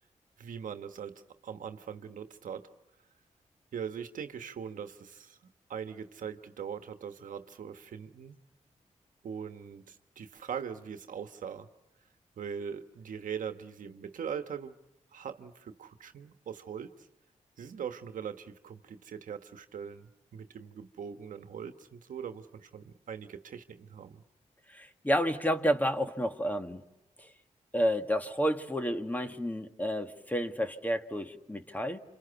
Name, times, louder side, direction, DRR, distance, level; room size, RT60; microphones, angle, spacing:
voice 1, 0.4-2.7 3.7-5.4 5.7-8.4 9.2-11.7 12.4-14.8 15.1-17.1 17.6-24.2, right 7 dB, 80° right, 1.3 m, -41 dB
voice 2, 24.7-26.8 27.7-32.0, equal, 10° left, 2.0 m, -30 dB
29.5 x 27.5 x 7.0 m
cardioid pair, 65°, 13 cm